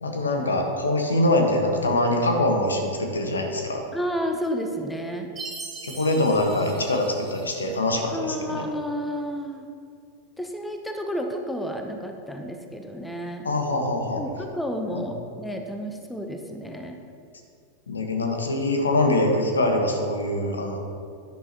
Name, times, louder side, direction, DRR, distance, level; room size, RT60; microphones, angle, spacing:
voice 1, 0.0-3.8 5.8-8.6 13.4-14.2 14.9-15.1 17.9-20.8, left 1 dB, 75° left, 3 dB, 1.3 m, -24 dB
voice 2, 3.9-5.3 8.1-9.7 10.4-13.5 14.2-17.0, equal, 5° left, 4 dB, 0.8 m, -31 dB
Chime, 5.4-7.8, right 3 dB, 15° right, 2.7 m, -40 dB
11.0 x 11.0 x 3.0 m, 2.3 s
figure-of-eight pair, 90°, 0 cm